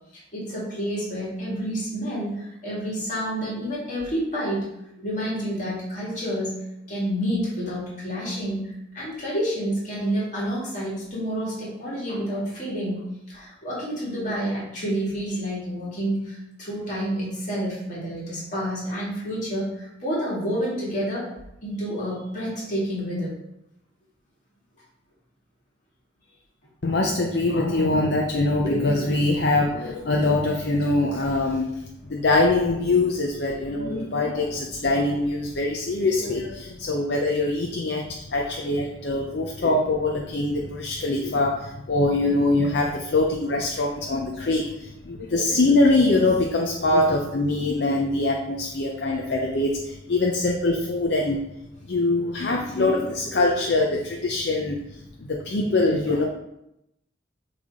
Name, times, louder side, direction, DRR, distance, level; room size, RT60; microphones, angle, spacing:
voice 1, 0.3-4.7 5.0-8.7 8.9-21.3 21.6-23.3, equal, 40° left, -6 dB, 2.4 m, -29 dB
voice 2, 26.8-51.4 51.9-56.2, left 2 dB, 60° left, 0 dB, 0.6 m, -23 dB
8.0 x 3.4 x 3.6 m, 0.85 s
head